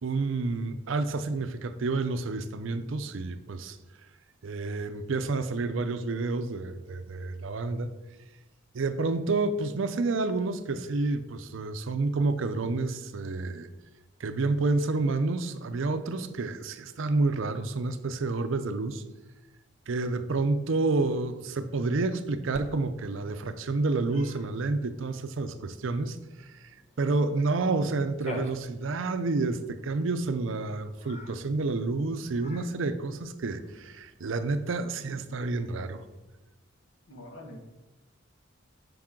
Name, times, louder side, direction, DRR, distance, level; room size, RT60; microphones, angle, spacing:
voice 1, 0.0-3.8 4.4-7.9 8.7-13.7 14.2-19.0 19.9-36.0, right 3 dB, 70° right, 10 dB, 0.5 m, -29 dB
Cat, 22.5-36.2, left 1 dB, 30° left, 0.7 m, -49 dB
voice 2, 37.1-37.6, left 1 dB, 80° left, 1 dB, 1.4 m, -44 dB
5.8 x 5.3 x 3.7 m, 1.1 s
head